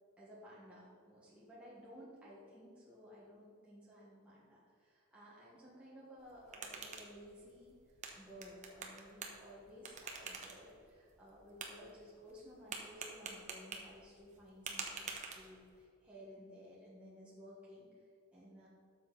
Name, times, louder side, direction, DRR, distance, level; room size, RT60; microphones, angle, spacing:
voice 1, 0.2-7.7 8.2-17.9 18.3-18.7, equal, 5° right, -8 dB, 1.7 m, -56 dB
sound 1, 6.2-15.8, right 4 dB, 35° right, 1.1 m, -49 dB
12.0 x 7.3 x 4.2 m, 2.4 s
head